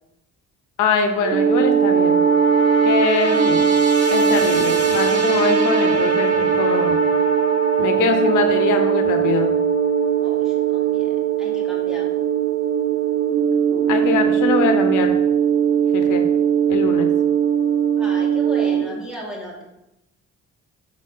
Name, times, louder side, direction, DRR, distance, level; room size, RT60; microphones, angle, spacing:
voice 1, 0.8-2.2 2.8-3.6 4.1-7.0 7.8-9.5 13.9-15.2 15.9-16.2 16.7-17.1, left 5 dB, 90° left, 6 dB, 0.9 m, -23 dB
sound 1, 1.2-18.8, right 7 dB, 50° right, 1.4 m, -19 dB
voice 2, 10.2-12.2 18.0-19.6, equal, ahead, -4 dB, 2.3 m, -36 dB
5.8 x 4.2 x 5.4 m, 0.88 s
cardioid pair, 90°, 30 cm